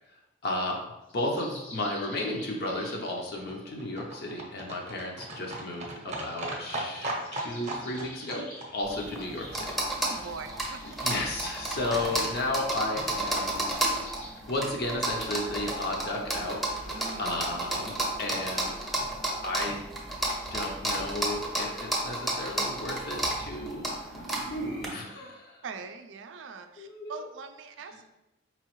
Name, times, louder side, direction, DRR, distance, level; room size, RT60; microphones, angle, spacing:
voice 1, 0.4-0.8 1.1-9.7 10.1-10.2 11.0-13.7 14.5-18.7 19.4-19.8 20.5-25.6 26.8-27.2, left 1 dB, 55° left, 0 dB, 0.6 m, -33 dB
sound 1, 1.1-3.8 4.6-6.3 7.0-14.3, left 1 dB, 80° left, 1.4 m, -50 dB
Livestock farm animals working animals, 2.3-10.5 10.7-10.8 11.1-11.2 11.4-11.5 11.7-11.8 12.0-12.1 12.3-12.4 12.6-12.7 12.9-13.0, right 1 dB, 35° right, 0.7 m, -39 dB
sound 2, 8.8-24.9, right 1 dB, ahead, 0.6 m, -32 dB
voice 2, 10.0-10.8 16.9-17.3 25.6-28.1, right 5 dB, 70° right, 8 dB, 0.4 m, -42 dB
4.6 x 3.0 x 3.0 m, 0.95 s
head